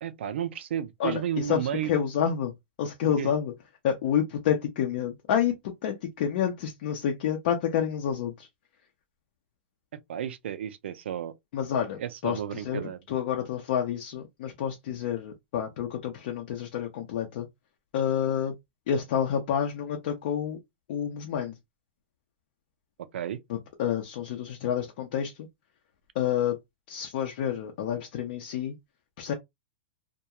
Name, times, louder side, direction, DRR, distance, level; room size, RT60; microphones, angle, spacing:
voice 1, 0.0-2.1 3.2-3.3 10.1-11.3 11.8-13.0 23.1-23.4, right 10 dB, 75° right, 0.5 m, -32 dB
voice 2, 1.0-2.5 2.8-3.5 3.8-8.5 11.5-17.5 17.9-18.5 18.9-20.6 20.9-21.6 23.5-25.3 26.1-26.6 26.9-28.7 29.2-29.3, left 9 dB, 55° left, 0.6 m, -29 dB
2.3 x 2.2 x 2.8 m
hypercardioid pair, 150°, 6 cm